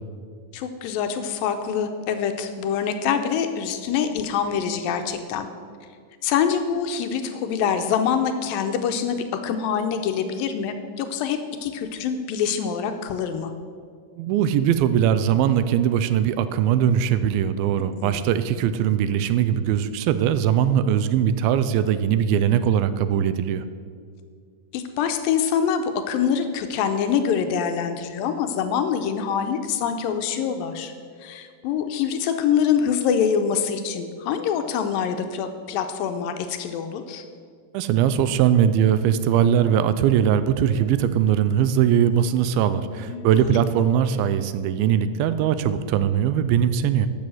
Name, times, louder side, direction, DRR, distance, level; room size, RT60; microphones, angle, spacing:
voice 1, 0.5-5.5 6.2-13.5 18.0-18.2 24.7-30.9 31.2-37.2 43.1-43.5, left 7 dB, 80° left, 7 dB, 2.2 m, -25 dB
voice 2, 14.2-23.6 37.7-47.1, right 9 dB, 80° right, 12 dB, 2.3 m, -21 dB
12.5 x 6.3 x 7.7 m, 2.1 s
omnidirectional pair, 4.5 m